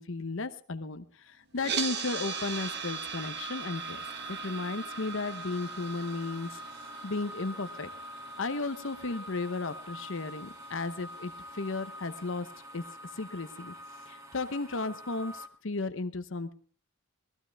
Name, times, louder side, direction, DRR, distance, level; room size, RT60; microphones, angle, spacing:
voice 1, 0.0-4.0 4.3-6.6 7.0-7.9 8.4-12.5 12.7-12.8 13.1-13.7 14.1-16.5, left 3 dB, 60° left, 11 dB, 0.9 m, -34 dB
sound 1, 1.6-11.7, right 6 dB, 50° right, 1.5 m, -40 dB
sound 2, 2.1-15.5, left 1 dB, 15° right, 1.2 m, -46 dB
19.0 x 14.5 x 3.5 m, 0.43 s
head